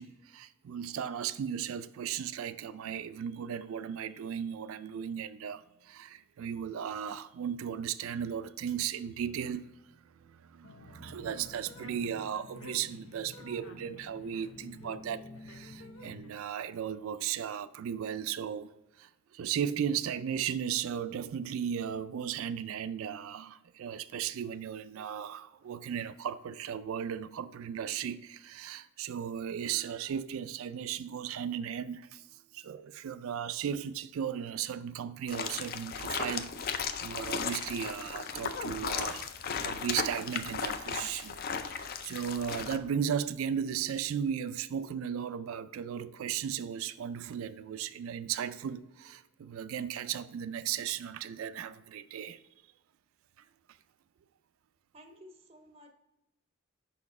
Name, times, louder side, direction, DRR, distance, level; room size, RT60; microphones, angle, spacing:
voice 1, 0.0-9.6 10.2-39.3 39.6-52.4, right 8 dB, 75° right, 0.3 m, -36 dB
sound 1, 10.6-16.3, left 2 dB, 80° left, 0.8 m, -50 dB
sound 2, 35.3-42.8, left 6 dB, 45° left, 0.4 m, -36 dB
voice 2, 54.9-55.9, equal, 25° right, 0.5 m, -54 dB
5.5 x 4.2 x 4.1 m
head